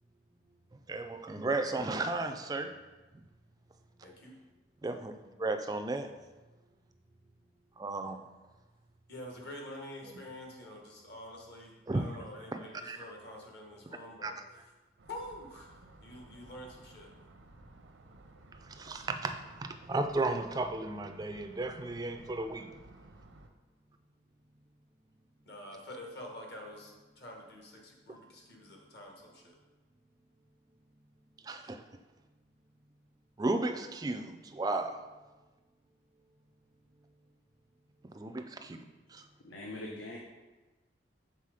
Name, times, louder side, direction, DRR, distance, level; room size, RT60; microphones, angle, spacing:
voice 1, 0.9-2.7 4.8-5.1 5.4-6.1 7.8-8.2 11.9-12.1 12.5-13.0 14.2-14.3 18.6-22.7 31.4-31.8 33.4-35.0 38.1-38.8 39.1-39.2, right 2 dB, 20° right, 7 dB, 0.3 m, -34 dB
voice 2, 4.0-4.3 9.1-14.6 15.1-17.1 25.4-29.6, left 1 dB, 55° left, 0 dB, 1.2 m, -47 dB
sound 1, 15.0-23.5, right 2 dB, 80° right, 0.6 m, -56 dB
voice 3, 39.4-40.2, left 2 dB, 80° left, -1 dB, 0.8 m, -42 dB
5.7 x 4.1 x 4.9 m, 1.2 s
head